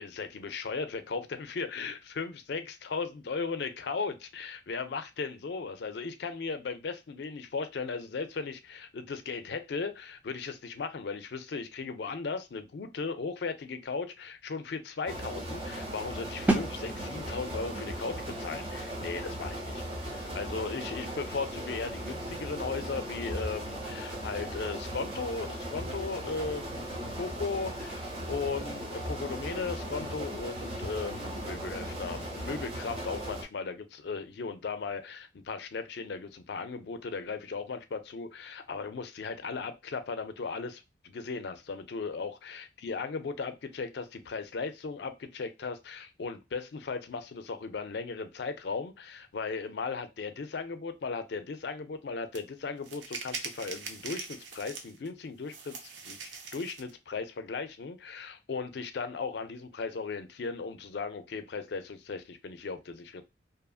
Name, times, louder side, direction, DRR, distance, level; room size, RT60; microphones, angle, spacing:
voice 1, 0.0-26.9 27.2-63.2, left 4 dB, 60° left, 0.4 m, -37 dB
sound 1, 15.1-33.4, right 1 dB, 30° right, 0.7 m, -37 dB
sound 2, 16.5-22.2, right 2 dB, 10° right, 0.3 m, -36 dB
sound 3, 52.3-52.4 52.8-55.1 55.5-56.9, right 4 dB, 70° right, 0.6 m, -41 dB
2.7 x 2.5 x 2.3 m
head